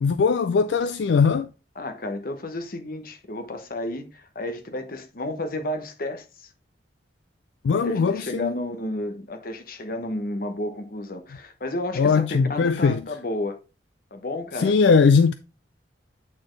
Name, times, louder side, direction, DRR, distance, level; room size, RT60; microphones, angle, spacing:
voice 1, 0.0-1.5 7.6-8.5 12.0-13.0 14.6-15.3, left 5 dB, 70° left, 0.4 m, -20 dB
voice 2, 1.8-6.5 7.7-13.6 14.1-14.7, left 1 dB, 50° left, 1.0 m, -32 dB
8.5 x 4.2 x 3.2 m
head